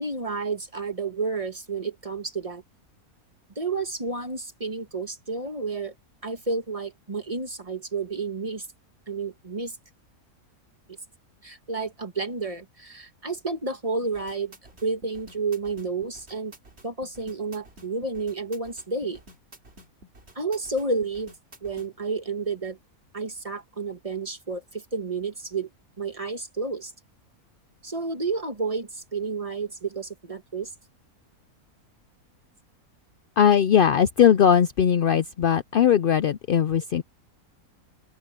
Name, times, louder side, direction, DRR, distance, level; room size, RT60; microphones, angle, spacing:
voice 1, 0.0-2.6 3.6-5.9 6.2-8.7 9.1-9.8 11.4-14.5 14.8-16.5 16.8-19.2 20.4-21.3 21.6-22.8 23.1-25.7 26.0-26.9 27.8-30.7, right 3 dB, 25° right, 1.6 m, -31 dB
sound 1, 14.0-21.9, right 1 dB, 45° right, 4.0 m, -50 dB
voice 2, 33.4-37.0, left 8 dB, 80° left, 0.4 m, -19 dB
open air
omnidirectional pair, 1.6 m